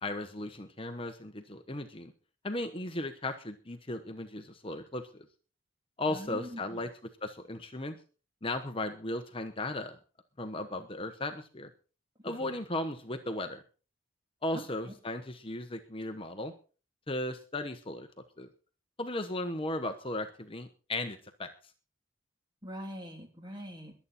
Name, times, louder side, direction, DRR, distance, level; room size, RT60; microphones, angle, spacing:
voice 1, 0.0-2.1 2.4-5.3 6.0-6.9 7.2-8.0 8.4-10.0 10.4-11.7 12.2-13.6 14.4-16.5 17.1-18.1 18.4-18.5 19.0-21.5, left 2 dB, 30° left, 7 dB, 1.2 m, -36 dB
voice 2, 6.1-6.8 12.2-12.5 14.5-14.9 22.6-23.9, equal, 20° right, 3 dB, 3.0 m, -43 dB
22.5 x 8.7 x 4.3 m, 0.37 s
head